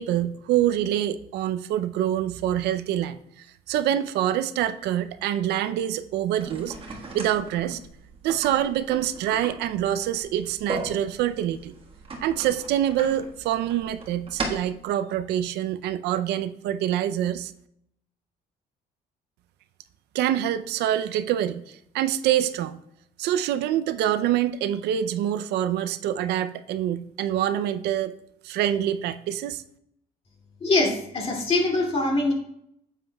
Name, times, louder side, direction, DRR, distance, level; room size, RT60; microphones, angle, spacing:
voice 1, 0.0-7.8 8.2-11.7 12.2-17.5 20.1-22.8 23.2-28.1 28.4-29.6, right 11 dB, 80° right, 12 dB, 0.5 m, -26 dB
sound 1, 6.4-14.8, right 3 dB, 35° right, 1.5 m, -38 dB
voice 2, 30.6-32.3, left 2 dB, 35° left, 0 dB, 2.4 m, -23 dB
9.0 x 7.6 x 2.3 m, 0.73 s
cardioid pair, 110°, 17 cm